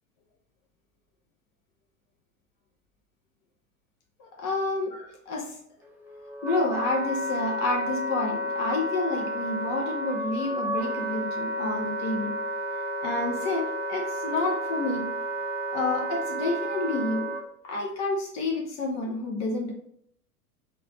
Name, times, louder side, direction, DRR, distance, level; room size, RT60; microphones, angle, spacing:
voice 1, 4.2-5.6 6.4-12.4 13.0-15.1 15.7-17.3 17.6-19.7, left 2 dB, 35° left, 0 dB, 1.0 m, -29 dB
Wind instrument woodwind instrument, 5.8-17.4, right 1 dB, 5° right, 0.5 m, -31 dB
4.2 x 2.6 x 3.9 m, 0.68 s
figure-of-eight pair, 95°, 45 cm